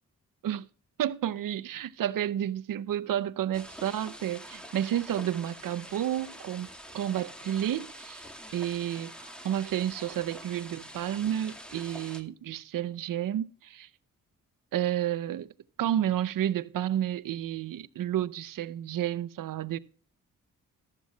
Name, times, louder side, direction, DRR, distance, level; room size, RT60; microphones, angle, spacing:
voice 1, 1.0-6.7 6.9-8.2 8.5-13.9 14.7-15.5 15.8-19.8, right 11 dB, 70° right, 0.7 m, -31 dB
sound 1, 3.5-12.2, equal, 5° left, 2.0 m, -46 dB
14.5 x 12.0 x 2.3 m
cardioid pair, 60°, 34 cm